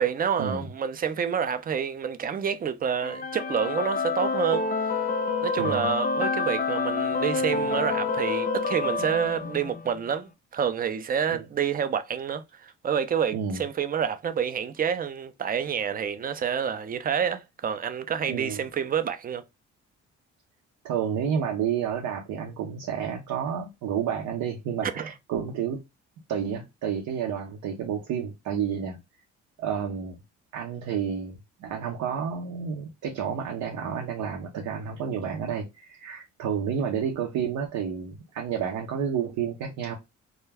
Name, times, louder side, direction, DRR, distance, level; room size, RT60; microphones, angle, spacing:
voice 1, 0.0-4.7 5.4-19.4 24.8-25.0, right 7 dB, 30° right, 0.4 m, -28 dB
sound 1, 3.0-10.0, left 4 dB, 30° left, 0.5 m, -28 dB
voice 2, 5.6-5.9 11.3-11.4 13.3-13.6 18.3-18.6 20.8-25.8 26.3-29.0 29.6-30.2 30.5-40.0, right 7 dB, 85° right, 0.6 m, -30 dB
2.2 x 2.2 x 3.3 m
cardioid pair, 90°, 30 cm